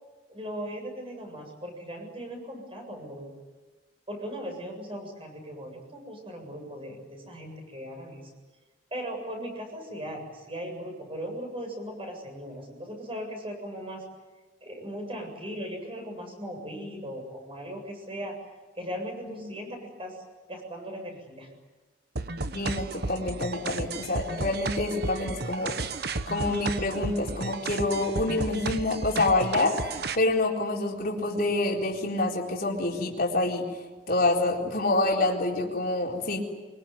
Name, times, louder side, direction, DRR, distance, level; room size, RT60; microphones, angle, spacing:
voice 1, 0.3-3.3 4.1-8.3 8.9-14.0 14.6-18.3 18.8-20.2 20.5-21.5, equal, 30° right, 3 dB, 7.5 m, -38 dB
sound 1, 22.2-30.2, right 3 dB, 55° right, 1.2 m, -33 dB
voice 2, 22.5-25.8 26.3-33.7 34.1-36.4, left 2 dB, 50° left, -1 dB, 4.1 m, -27 dB
24.0 x 23.5 x 9.6 m, 1.2 s
head